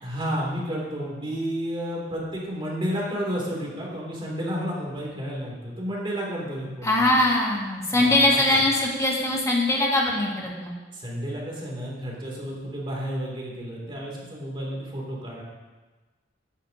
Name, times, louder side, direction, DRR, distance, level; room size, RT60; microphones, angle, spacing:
voice 1, 0.0-7.2 7.9-8.4 10.9-15.4, equal, 30° right, -3 dB, 2.9 m, -31 dB
voice 2, 6.8-10.7, left 1 dB, 15° left, -3 dB, 2.1 m, -22 dB
14.0 x 10.0 x 2.9 m, 1.3 s
head